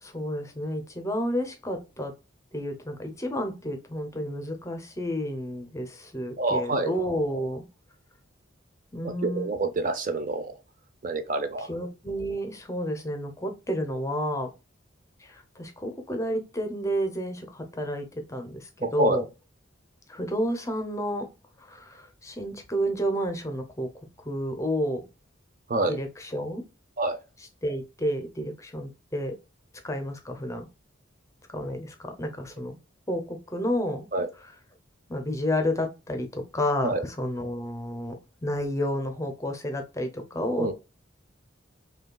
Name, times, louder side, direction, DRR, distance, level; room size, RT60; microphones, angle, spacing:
voice 1, 0.0-2.1 2.5-7.6 8.9-9.5 11.6-14.5 15.2-19.2 20.1-21.3 21.7-23.9 24.2-25.1 25.9-26.6 27.6-29.4 29.8-30.7 31.5-32.8 33.1-34.1 35.1-40.7, equal, 15° left, 0.6 m, -31 dB
voice 2, 6.4-6.9 9.0-10.5 11.0-11.7 18.8-19.2 25.7-26.0 27.0-27.2 34.1-34.3 36.8-37.0 40.6-40.7, right 2 dB, 45° right, 0.5 m, -27 dB
5.5 x 2.3 x 2.2 m
head